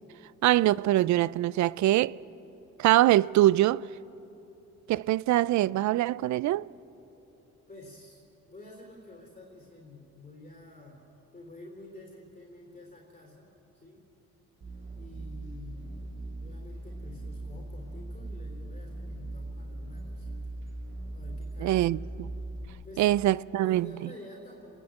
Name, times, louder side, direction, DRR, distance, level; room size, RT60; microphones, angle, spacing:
voice 1, 0.4-2.2 2.8-3.8 4.9-6.7 21.6-22.0 23.0-23.9, right 15 dB, 70° right, 0.5 m, -23 dB
voice 2, 7.7-8.2 8.5-14.0 15.0-15.9 16.4-20.5 21.1-22.3 22.8-23.1 23.6-24.8, left 2 dB, 25° left, 3.6 m, -49 dB
sound 1, 14.6-22.7, right 2 dB, 40° right, 2.9 m, -39 dB
30.0 x 10.0 x 8.9 m
cardioid pair, 90°, 30 cm